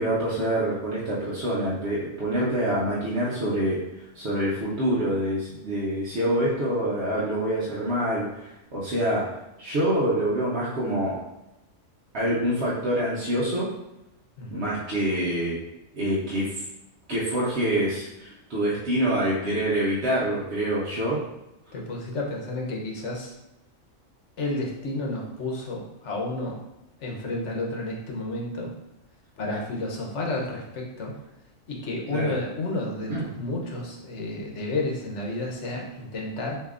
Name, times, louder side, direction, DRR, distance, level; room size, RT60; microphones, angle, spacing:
voice 1, 0.0-9.3 9.6-11.2 12.1-13.7 14.5-15.6 15.9-16.6 17.1-21.2 32.1-32.3 33.1-33.2, right 1 dB, 55° right, -8 dB, 1.1 m, -26 dB
voice 2, 21.7-23.3 24.4-26.6 27.0-28.7 29.4-31.1 31.7-36.6, left 2 dB, 60° left, -1 dB, 1.2 m, -31 dB
6.7 x 2.8 x 2.5 m, 0.92 s
omnidirectional pair, 1.4 m